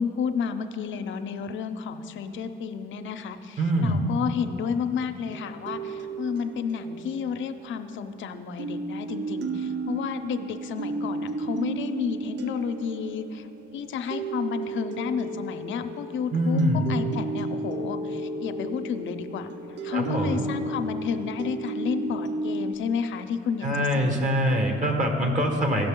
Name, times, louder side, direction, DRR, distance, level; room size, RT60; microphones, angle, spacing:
voice 1, 0.0-13.5 13.7-19.5 19.8-24.2, left 6 dB, 75° left, 8 dB, 0.6 m, -31 dB
voice 2, 3.6-4.0 16.3-16.8 19.9-20.4 23.6-25.9, equal, 40° right, 2 dB, 1.6 m, -24 dB
sound 1, 5.3-8.2 8.6-22.7, right 3 dB, 60° right, 0.6 m, -33 dB
16.5 x 6.0 x 3.8 m, 2.7 s
cardioid pair, 90°, 20 cm